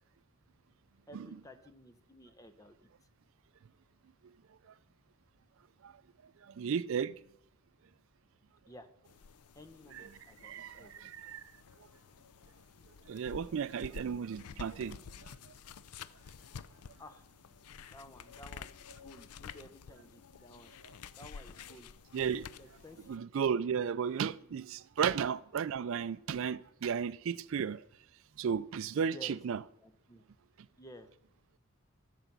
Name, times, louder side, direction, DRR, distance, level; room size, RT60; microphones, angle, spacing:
voice 1, 1.1-2.8 8.7-8.9 9.6-10.9 17.0-17.2 17.9-20.7 21.2-21.9 22.6-23.2 25.1-25.3 28.9-29.4 29.8-30.2 30.8-31.1, left 1 dB, 15° left, 0.7 m, -54 dB
voice 2, 6.4-7.1 9.9-10.1 10.4-11.4 13.1-15.5 22.1-22.4 23.1-27.8 28.4-29.6, right 7 dB, 60° right, 0.3 m, -34 dB
sound 1, 9.0-23.2, left 6 dB, 85° left, 0.5 m, -51 dB
14.5 x 6.8 x 6.0 m
head